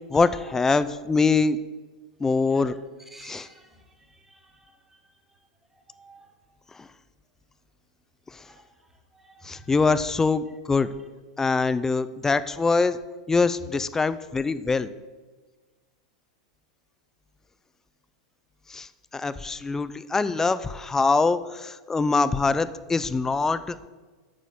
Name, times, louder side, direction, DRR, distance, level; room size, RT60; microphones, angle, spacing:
voice 1, 0.1-1.6 2.2-2.8 3.2-3.5 6.7-6.9 8.3-8.4 9.4-10.9 11.4-13.0 13.3-14.9 18.7-23.8, left 4 dB, 10° left, 15 dB, 0.3 m, -24 dB
voice 2, 3.1-5.0 5.7-6.3 8.4-8.6 9.1-9.7, right 2 dB, 5° right, 3 dB, 1.2 m, -52 dB
9.2 x 6.2 x 4.2 m, 1.3 s
hypercardioid pair, 120°, 4 cm